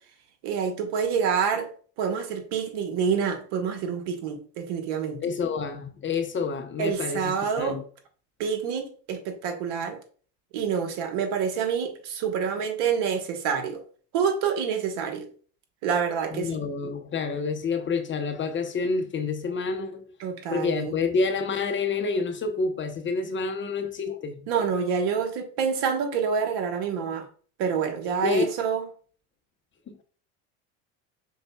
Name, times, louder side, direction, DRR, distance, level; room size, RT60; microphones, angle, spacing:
voice 1, 0.4-1.7 2.0-5.2 6.8-7.8 8.4-10.0 10.5-13.8 14.1-15.3 15.8-16.6 20.2-20.9 24.5-27.3 27.6-28.8, right 6 dB, 65° right, 1.4 m, -27 dB
voice 2, 5.2-7.8 16.3-20.1 20.5-24.5 28.2-28.4 29.9-30.0, left 4 dB, 30° left, 0.7 m, -28 dB
5.5 x 4.0 x 2.3 m
hypercardioid pair, 85°, 42 cm